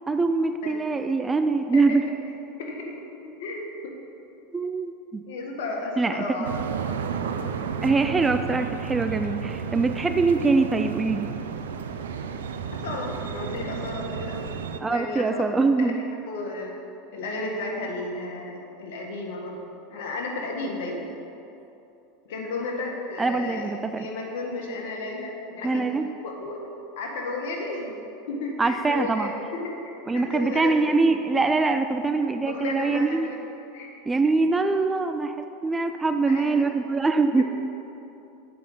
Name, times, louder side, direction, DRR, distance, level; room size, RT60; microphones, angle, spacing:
voice 1, 0.1-2.0 4.5-5.2 6.0-6.2 7.8-11.3 14.8-16.0 23.2-24.1 25.6-26.1 28.6-29.3 30.1-33.3 34.1-37.4, right 3 dB, 15° right, 8 dB, 0.4 m, -23 dB
voice 2, 1.7-2.1 2.6-3.0 3.4-3.9 5.3-6.5 12.7-14.5 14.8-15.4 16.3-16.7 17.1-19.6 19.9-21.1 22.3-23.7 24.0-26.6 27.0-28.0 28.3-31.0 32.5-33.4 33.7-33.9 36.3-36.6 37.3-37.4, left 2 dB, 70° left, 0 dB, 1.6 m, -33 dB
sound 1, 6.4-14.8, right 6 dB, 85° right, 0.5 m, -32 dB
7.7 x 5.4 x 7.3 m, 2.9 s
hypercardioid pair, 100°, 0 cm